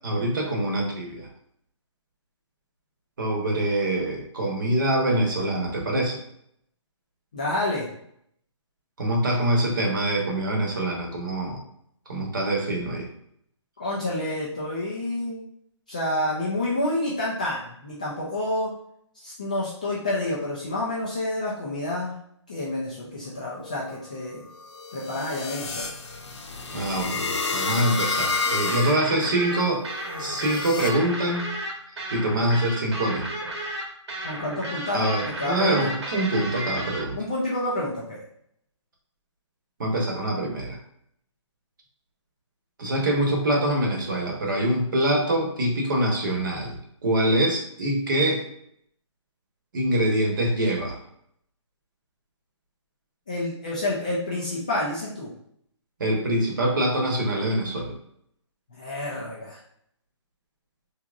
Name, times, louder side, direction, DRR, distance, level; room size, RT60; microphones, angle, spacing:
voice 1, 0.0-1.3 3.2-6.2 9.0-11.6 12.1-13.1 26.7-29.8 30.2-31.5 32.1-33.3 34.9-37.2 39.8-40.8 42.8-48.4 49.7-51.0 56.0-58.0, right 1 dB, 40° right, 1 dB, 1.0 m, -24 dB
voice 2, 7.3-7.8 13.8-15.4 15.9-18.7 19.2-22.2 22.5-24.4 24.9-25.9 34.2-35.9 37.2-38.2 53.3-55.3 58.7-59.6, left 1 dB, 15° left, -6 dB, 0.3 m, -29 dB
sound 1, 23.4-30.9, left 4 dB, 65° left, 0.7 m, -31 dB
sound 2, 28.7-37.0, right 1 dB, 65° right, 1.1 m, -33 dB
3.6 x 2.9 x 2.4 m, 0.71 s
hypercardioid pair, 165°, 16 cm